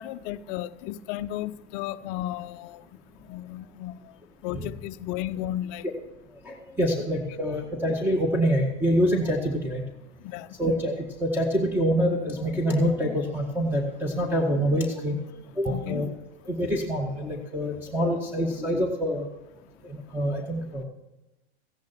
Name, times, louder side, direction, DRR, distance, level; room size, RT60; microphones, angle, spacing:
voice 1, 0.0-4.2 4.4-5.9 10.2-10.6 15.7-16.1, left 13 dB, 45° left, 0.7 m, -34 dB
voice 2, 6.4-9.8 10.6-10.9 11.2-15.2 15.6-16.1 16.5-19.3 19.8-20.8, equal, 5° right, 1.8 m, -26 dB
15.0 x 10.5 x 4.5 m
hypercardioid pair, 105°, 33 cm